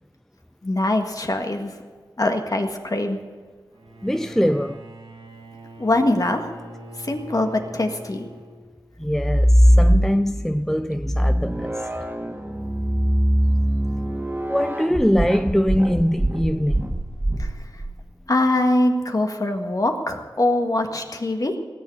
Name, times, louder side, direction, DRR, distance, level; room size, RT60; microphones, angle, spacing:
voice 1, 0.6-1.8 2.2-3.2 5.8-6.4 7.0-8.3 17.4-17.5 18.3-21.6, left 1 dB, 45° left, 1.7 m, -22 dB
Bowed string instrument, 3.7-9.0, equal, 75° right, 1.7 m, -42 dB
voice 2, 4.0-4.9 9.0-11.9 14.5-17.0, equal, 5° left, 0.4 m, -22 dB
sound 1, 9.1-10.5 11.0-17.9, equal, 20° right, 1.8 m, -21 dB
17.5 x 7.1 x 9.6 m
wide cardioid pair, 55°, 9 cm